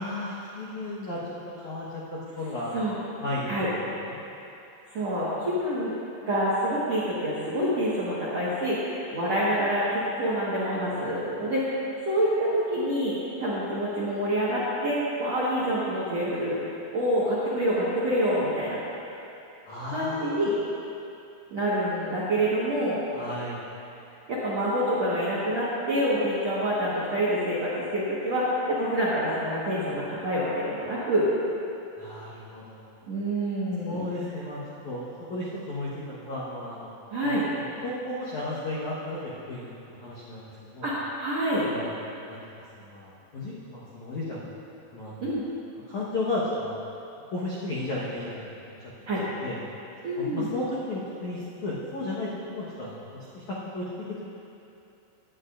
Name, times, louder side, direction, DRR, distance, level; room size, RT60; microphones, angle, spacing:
voice 1, 0.0-2.7 3.2-3.7 4.0-4.2 19.7-20.6 23.1-23.6 32.0-32.8 33.9-35.0 35.3-37.0 37.2-40.9 41.6-41.9 42.3-42.4 42.8-44.5 44.9-45.4 45.9-46.8 47.3-48.4 48.6-49.1 49.4-49.6 50.2-53.1 53.3-54.3, left 1 dB, 70° left, -8 dB, 1.8 m, -34 dB
voice 2, 4.9-5.9 6.2-11.8 12.0-13.1 13.4-16.6 16.9-18.8 19.9-20.5 21.5-23.0 24.3-31.3 33.1-34.1 37.1-37.4 40.8-41.6 45.2-45.4 49.1-49.2 50.0-50.5, equal, 60° right, -9 dB, 1.7 m, -27 dB
18.0 x 11.5 x 2.6 m, 2.8 s
omnidirectional pair, 5.4 m